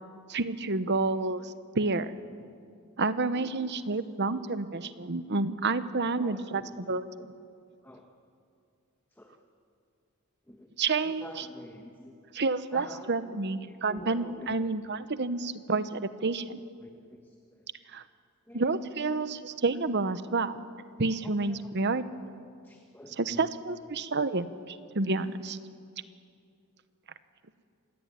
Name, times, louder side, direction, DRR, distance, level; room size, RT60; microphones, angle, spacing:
voice 1, 0.3-2.2 3.0-7.3 10.8-11.4 12.3-16.6 17.9-18.0 18.5-20.6 21.0-22.0 23.2-25.6, right 3 dB, 50° right, 13 dB, 1.0 m, -29 dB
voice 2, 6.2-6.6 7.8-8.0 9.1-9.4 10.5-10.7 11.0-12.1 12.7-13.3 13.9-14.6 16.8-17.7 18.5-18.7 21.2-21.7 22.6-23.5, left 1 dB, 10° left, 2 dB, 1.5 m, -47 dB
27.0 x 17.0 x 9.9 m, 2.3 s
head